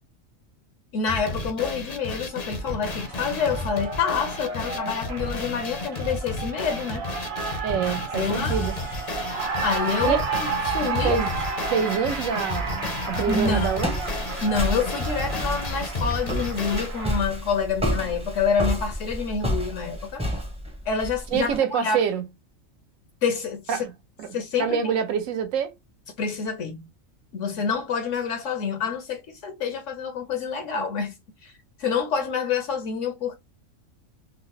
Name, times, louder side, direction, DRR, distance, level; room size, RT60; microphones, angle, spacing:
voice 1, 0.9-7.0 7.9-8.7 9.6-11.2 13.3-13.7 14.4-20.2 20.9-22.0 23.2-23.9 24.3-24.8 26.2-26.9 27.3-31.5 31.8-33.4, left 5 dB, 70° left, 0.9 m, -27 dB
sound 1, 1.1-16.9, left 2 dB, 45° left, 0.5 m, -32 dB
Cheering, 2.0-17.2, right 4 dB, 55° right, 1.0 m, -33 dB
voice 2, 7.6-8.7 10.0-10.2 10.9-11.3 11.7-13.9 21.3-22.2 23.7-23.9 24.2-24.3 24.6-25.7, right 7 dB, 75° right, 1.1 m, -26 dB
Walk footsteps, 13.0-21.6, equal, 5° right, 0.5 m, -30 dB
3.7 x 2.0 x 2.7 m
omnidirectional pair, 1.4 m